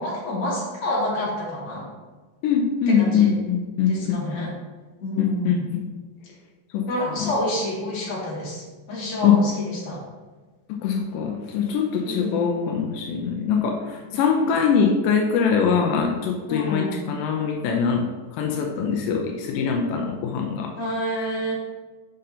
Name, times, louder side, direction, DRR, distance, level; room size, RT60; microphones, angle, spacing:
voice 1, 0.0-1.8 2.9-3.3 3.9-4.5 5.0-5.8 6.9-10.0 12.0-12.4 16.5-17.0 20.8-21.5, left 1 dB, 40° left, -6 dB, 2.7 m, -28 dB
voice 2, 2.4-4.5 5.2-5.8 6.7-6.9 7.2-7.3 9.2-9.4 10.7-20.7, left 6 dB, 85° left, 2 dB, 1.9 m, -23 dB
6.5 x 5.5 x 4.0 m, 1.3 s
omnidirectional pair, 4.6 m